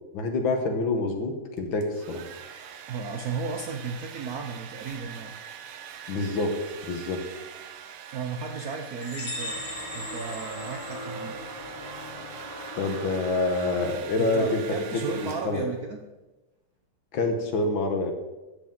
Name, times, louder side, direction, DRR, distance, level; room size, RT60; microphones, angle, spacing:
voice 1, 0.1-2.2 6.1-6.5 6.9-7.2 12.8-14.8 15.2-15.6 17.1-18.1, left 3 dB, 65° left, 4 dB, 1.9 m, -27 dB
Domestic sounds home sounds, 1.6-15.8, right 8 dB, 85° right, 1.7 m, -43 dB
voice 2, 2.9-5.3 7.6-9.6 9.9-11.4 14.1-16.0, right 5 dB, 65° right, 4 dB, 0.9 m, -34 dB
sound 1, 9.0-11.6, left 1 dB, 90° left, 4.5 m, -38 dB
sound 2, 9.2-14.1, equal, 15° right, 2.7 m, -40 dB
13.0 x 8.1 x 3.8 m, 1.1 s
omnidirectional pair, 2.4 m